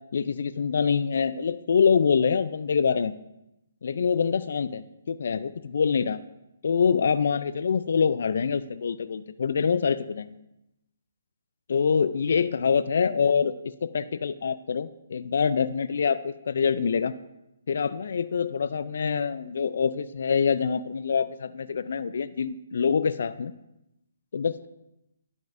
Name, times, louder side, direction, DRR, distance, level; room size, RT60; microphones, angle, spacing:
voice 1, 0.1-3.1 3.8-6.2 6.6-10.4 11.7-17.1 17.7-23.5 24.3-24.7, left 6 dB, 65° left, 13 dB, 0.3 m, -25 dB
11.0 x 5.3 x 2.5 m, 0.89 s
hypercardioid pair, 145°, 0 cm